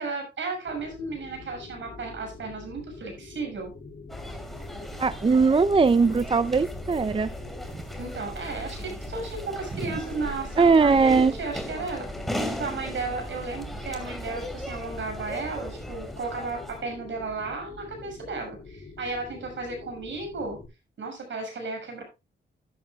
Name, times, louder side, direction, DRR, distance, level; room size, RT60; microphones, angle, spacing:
voice 1, 0.0-3.7 8.0-12.1 12.4-20.6 21.0-22.0, right 3 dB, 70° right, 6.8 m, -34 dB
sound 1, 0.7-20.7, left 4 dB, 50° left, 3.1 m, -45 dB
sound 2, 4.1-16.8, equal, ahead, 2.9 m, -37 dB
voice 2, 5.0-7.3 10.6-11.3, right 4 dB, 25° right, 0.5 m, -20 dB
13.5 x 10.5 x 2.3 m
cardioid pair, 80°, 20 cm